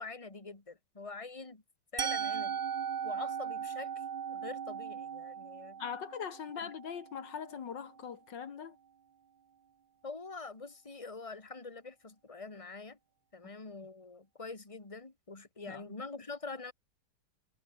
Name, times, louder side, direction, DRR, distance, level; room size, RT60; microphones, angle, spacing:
voice 1, 0.0-1.6 1.9-2.6 3.0-5.8 6.6-6.7 10.0-13.0 13.3-16.7, left 3 dB, 15° left, 2.4 m, -45 dB
Musical instrument, 2.0-7.9, right 7 dB, 75° right, 0.4 m, -38 dB
voice 2, 5.8-8.8 15.6-16.0, left 7 dB, 75° left, 2.2 m, -41 dB
omnidirectional pair, 1.9 m